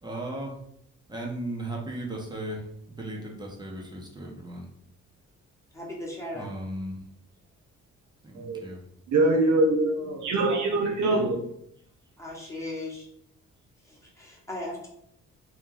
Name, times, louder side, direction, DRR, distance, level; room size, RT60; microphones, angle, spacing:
voice 1, 0.0-0.5 1.1-2.6 3.0-4.7 6.3-6.9 8.2-8.8, right 1 dB, 15° right, 1.1 m, -36 dB
voice 2, 5.7-6.5 12.2-13.1 13.8-14.9, left 1 dB, 10° left, 1.4 m, -37 dB
voice 3, 9.1-11.4, right 2 dB, 75° right, 1.0 m, -23 dB
3.1 x 2.7 x 3.8 m
cardioid pair, 90°, 30 cm